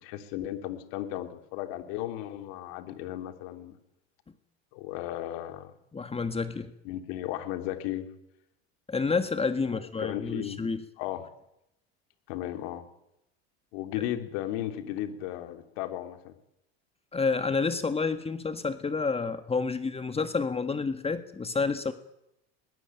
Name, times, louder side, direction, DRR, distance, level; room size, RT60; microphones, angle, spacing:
voice 1, 0.0-3.8 4.7-5.7 6.9-8.1 9.7-10.6 11.0-11.3 12.3-12.8 13.7-16.3, left 13 dB, 70° left, 8 dB, 3.4 m, -35 dB
voice 2, 5.9-6.7 8.9-10.8 14.0-14.1 17.1-21.9, left 4 dB, 20° left, 10 dB, 1.8 m, -29 dB
22.5 x 20.0 x 9.2 m, 0.83 s
hypercardioid pair, 90°, 31 cm